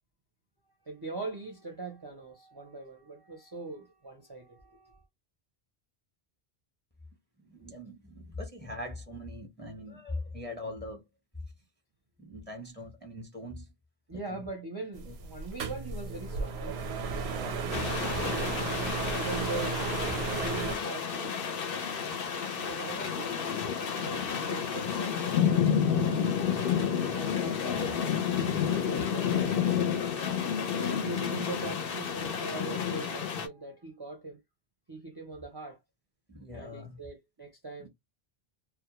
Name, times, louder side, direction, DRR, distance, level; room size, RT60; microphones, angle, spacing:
voice 1, 0.7-5.1 7.6-7.7 14.1-17.3 19.2-19.8 20.4-21.5 22.6-25.2 27.1-28.1 28.5-29.9 30.7-34.4 34.9-35.8 36.5-37.9, right 3 dB, 30° right, 0.4 m, -41 dB
voice 2, 7.4-11.0 12.2-13.7 14.1-14.4 15.1-15.2 17.3-18.7 19.3-19.7 23.7-24.4 27.8-27.9 36.3-37.0 37.8-37.9, left 1 dB, 10° left, 0.6 m, -43 dB
sound 1, 15.0-20.8, right 5 dB, 85° right, 0.8 m, -34 dB
sound 2, 17.7-33.5, left 7 dB, 65° left, 0.7 m, -30 dB
2.1 x 2.1 x 2.9 m
omnidirectional pair, 1.1 m